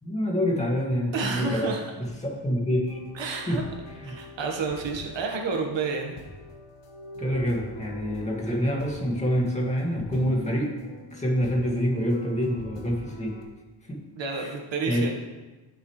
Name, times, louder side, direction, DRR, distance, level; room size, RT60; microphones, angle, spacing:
voice 1, 0.0-1.7 2.0-3.0 3.5-3.6 4.0-4.2 7.2-10.7 11.1-13.4 13.9-14.0 14.3-14.5 14.9-15.1, equal, 15° left, -3 dB, 2.1 m, -26 dB
voice 2, 1.1-1.8 3.1-3.6 4.0-6.1 14.2-15.1, right 4 dB, 70° right, 1 dB, 1.6 m, -30 dB
sound 1, 2.9-13.4, left 1 dB, 65° left, 1.7 m, -43 dB
13.5 x 6.6 x 3.3 m, 1.2 s
wide cardioid pair, 160°, 46 cm